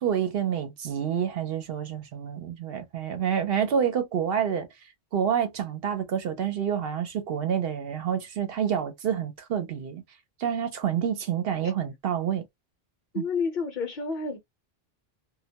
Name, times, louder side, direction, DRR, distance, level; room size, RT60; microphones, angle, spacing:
voice 1, 0.0-4.7 5.1-10.0 10.4-12.4 13.1-13.2, right 8 dB, 70° right, 0.8 m, -28 dB
voice 2, 13.1-14.4, left 4 dB, 55° left, 0.8 m, -29 dB
2.2 x 2.1 x 2.7 m
omnidirectional pair, 1.0 m